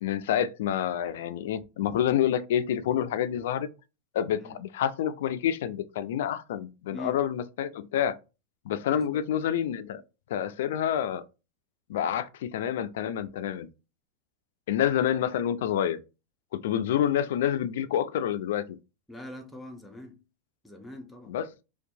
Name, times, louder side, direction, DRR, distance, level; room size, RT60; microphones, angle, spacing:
voice 1, 0.0-3.7 4.1-8.2 8.7-10.0 10.3-11.2 11.9-13.7 14.7-16.0 16.5-18.8 21.3-21.5, left 10 dB, 80° left, 0.3 m, -28 dB
voice 2, 6.9-7.2 8.9-9.2 19.1-20.2 20.6-21.3, left 1 dB, 5° left, 0.6 m, -43 dB
2.6 x 2.2 x 2.6 m
supercardioid pair, 135°, 0 cm